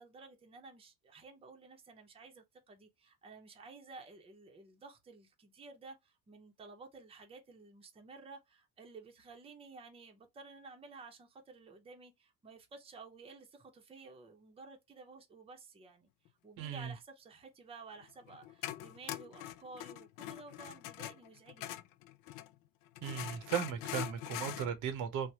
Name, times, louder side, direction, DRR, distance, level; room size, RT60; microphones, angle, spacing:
voice 1, 0.0-16.1 16.4-21.8, right 4 dB, 20° right, 0.7 m, -53 dB
voice 2, 16.6-16.9 23.0-25.3, right 8 dB, 70° right, 0.9 m, -36 dB
sound 1, 18.0-22.5 23.0-24.7, left 14 dB, 85° left, 0.5 m, -43 dB
3.3 x 2.1 x 2.8 m
cardioid pair, 135°, 32 cm